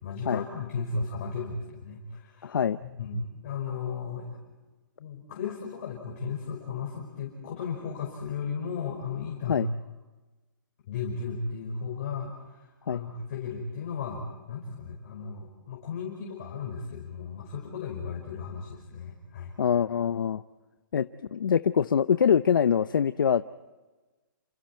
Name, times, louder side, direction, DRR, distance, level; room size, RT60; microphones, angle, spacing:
voice 1, 0.0-2.5 3.0-4.4 5.0-9.6 10.9-19.5, left 5 dB, 40° left, -1 dB, 5.2 m, -35 dB
voice 2, 2.4-2.8 9.5-9.7 12.9-13.0 19.6-20.4 20.9-23.4, left 7 dB, 80° left, 12 dB, 0.7 m, -24 dB
29.5 x 27.5 x 4.5 m, 1.2 s
hypercardioid pair, 170°, 11 cm